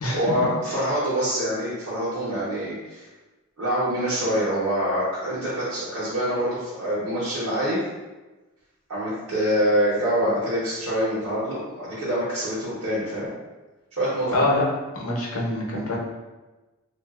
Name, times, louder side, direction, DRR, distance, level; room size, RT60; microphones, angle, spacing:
voice 1, 0.1-3.0 3.6-7.8 8.9-13.3 13.9-14.5, equal, 80° right, -9 dB, 1.0 m, -25 dB
voice 2, 14.3-14.6 14.9-16.0, left 1 dB, 75° left, -3 dB, 0.7 m, -25 dB
3.2 x 2.5 x 2.4 m, 1.1 s
head